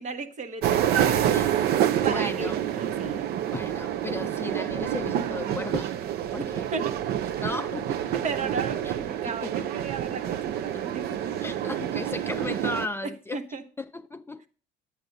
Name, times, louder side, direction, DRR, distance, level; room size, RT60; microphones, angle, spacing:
voice 1, 0.0-1.4 2.0-3.3 6.4-6.5 6.7-6.9 7.6-7.7 8.1-11.3 13.3-13.6, right 5 dB, 45° right, 1.0 m, -34 dB
sound 1, 0.6-12.9, right 10 dB, 70° right, 0.6 m, -28 dB
voice 2, 2.1-2.6 3.5-5.9 6.3-6.7 7.4-8.1 8.8-8.9 9.2-9.5 11.4-14.5, left 2 dB, 15° left, 0.3 m, -35 dB
9.8 x 8.1 x 3.9 m
cardioid pair, 110°, 17 cm